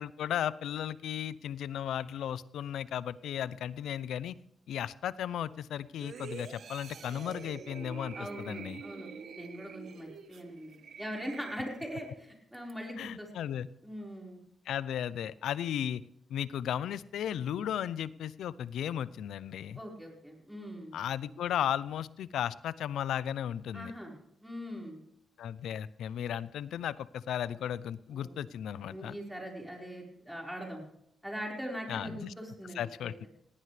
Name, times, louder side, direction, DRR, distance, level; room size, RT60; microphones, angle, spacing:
voice 1, 0.0-4.3 4.7-8.8 13.0-13.7 14.7-16.0 16.3-19.8 20.9-23.9 25.4-29.2 31.9-32.3 32.7-33.3, left 10 dB, 85° left, 17 dB, 0.5 m, -35 dB
sound 1, 6.0-12.1 12.5-12.7, right 6 dB, 70° right, 1.5 m, -47 dB
voice 2, 8.1-9.1 9.3-13.3 13.8-14.4 19.7-20.9 23.7-24.2 24.4-25.0 28.1-28.5 28.9-30.8 31.2-33.3, equal, 5° right, -1 dB, 4.8 m, -41 dB
19.0 x 16.5 x 3.4 m, 0.74 s
cardioid pair, 85°, 0 cm